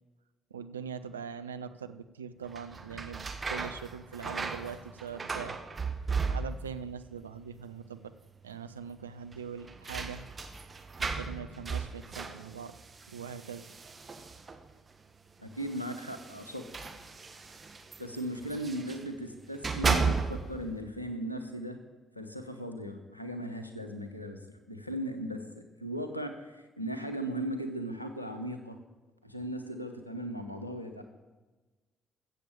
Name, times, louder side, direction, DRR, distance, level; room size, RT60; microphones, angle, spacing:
voice 1, 0.5-5.6 6.3-8.1 8.4-10.3 11.0-12.8 13.1-13.7, right 7 dB, 80° right, 10 dB, 0.5 m, -42 dB
sound 1, 2.5-6.9 7.1-7.8 8.1-8.2 9.3-14.7 15.6-19.1 19.5-20.7, right 4 dB, 30° right, 1.5 m, -35 dB
voice 2, 15.4-16.6 18.0-21.8 22.1-28.8 29.2-31.0, right 1 dB, 90° left, 7 dB, 0.9 m, -37 dB
15.0 x 7.5 x 6.9 m, 1.2 s
figure-of-eight pair, 45°, 0 cm